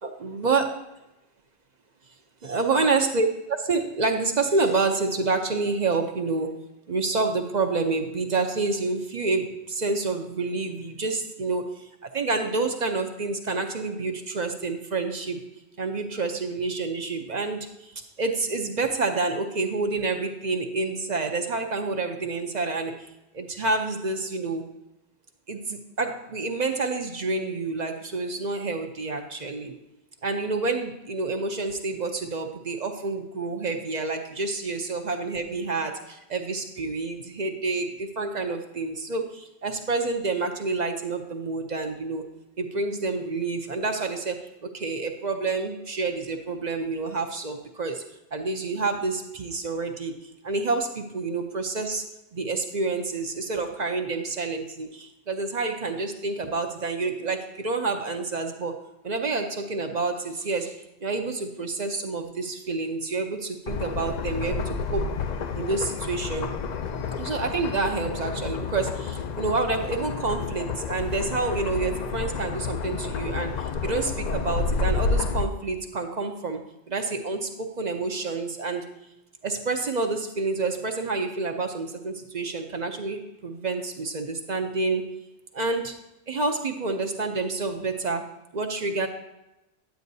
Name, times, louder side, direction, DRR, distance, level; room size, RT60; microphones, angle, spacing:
voice 1, 0.0-0.7 2.5-6.6 6.9-11.9 12.1-15.4 15.8-17.9 18.2-22.9 23.3-24.6 25.5-29.7 30.2-42.2 42.6-48.0 48.3-52.1 52.3-58.8 59.0-60.8 61.0-65.1 65.6-66.5 67.2-76.6 76.9-77.5 77.8-78.8 79.4-85.1 85.5-86.0 86.3-89.1, right 3 dB, 45° right, 5 dB, 0.7 m, -28 dB
sound 1, 63.7-75.4, left 4 dB, 55° left, 0.5 m, -30 dB
9.3 x 9.2 x 2.7 m, 0.92 s
omnidirectional pair, 1.1 m